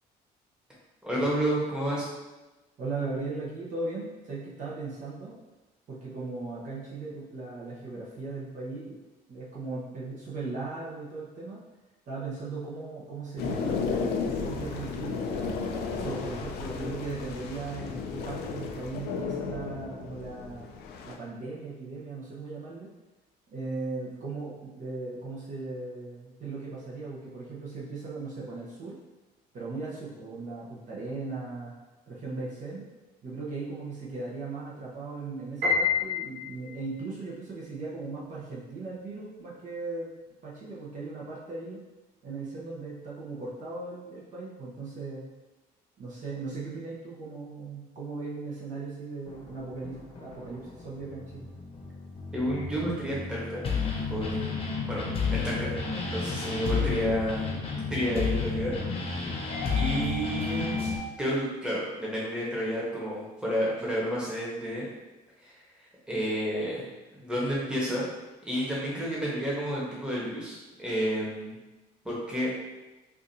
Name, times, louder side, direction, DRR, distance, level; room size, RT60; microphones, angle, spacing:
voice 1, 1.0-2.1 52.3-53.6 54.1-54.3 54.9-55.1 55.4-55.7 56.1-57.5 57.9-58.7 59.7-60.8 61.2-64.9 65.4-66.9 67.2-68.1 68.4-71.6 72.0-72.5, equal, 5° right, -6 dB, 1.2 m, -30 dB
voice 2, 2.8-5.4 5.9-9.0 9.3-11.6 12.1-15.5 15.9-20.7 21.0-22.9 23.5-29.0 29.5-31.7 32.1-32.8 33.2-40.1 40.4-41.8 42.2-45.2 46.0-51.5 56.7-57.1, right 3 dB, 50° right, -6 dB, 1.0 m, -38 dB
sound 1, 13.4-21.2, left 5 dB, 70° left, 0.5 m, -33 dB
Piano, 35.6-36.9, left 5 dB, 80° right, 1.4 m, -27 dB
sound 2, 49.3-61.0, left 5 dB, 35° left, 0.9 m, -32 dB
4.8 x 2.5 x 2.7 m, 1.1 s
cardioid pair, 110°, 17 cm